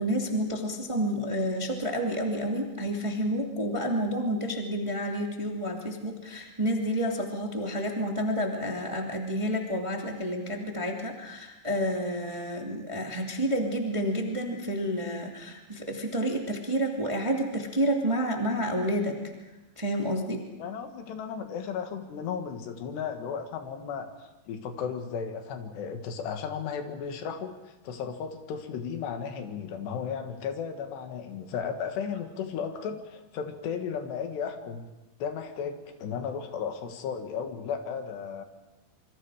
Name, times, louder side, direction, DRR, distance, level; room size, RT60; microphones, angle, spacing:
voice 1, 0.0-19.2 19.8-20.4, equal, 10° right, 1 dB, 1.6 m, -29 dB
voice 2, 20.6-34.9 35.2-38.4, left 7 dB, 85° left, 6 dB, 3.9 m, -35 dB
27.5 x 24.5 x 5.0 m, 1.1 s
omnidirectional pair, 4.7 m